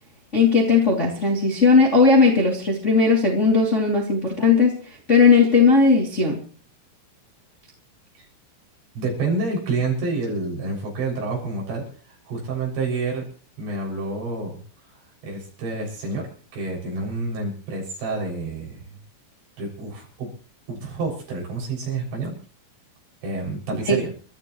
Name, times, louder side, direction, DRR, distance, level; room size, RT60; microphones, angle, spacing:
voice 1, 0.3-4.8 5.1-6.4 23.9-24.0, left 4 dB, 20° left, -2 dB, 2.4 m, -17 dB
voice 2, 9.0-11.9 12.3-13.3 13.6-14.6 15.2-16.3 16.5-19.0 19.6-20.3 20.7-22.4 23.2-24.1, right 3 dB, 65° right, -2 dB, 9.0 m, -28 dB
29.5 x 13.5 x 3.2 m, 0.41 s
omnidirectional pair, 5.5 m